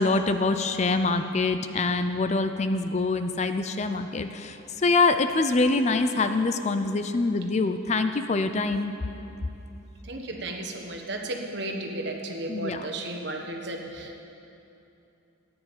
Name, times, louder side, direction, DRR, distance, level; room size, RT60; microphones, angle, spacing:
voice 1, 0.0-8.9 12.5-12.9, left 3 dB, 35° left, 8 dB, 0.5 m, -25 dB
voice 2, 10.0-14.2, right 2 dB, 55° right, 2 dB, 1.4 m, -34 dB
14.0 x 9.7 x 7.3 m, 2.8 s
head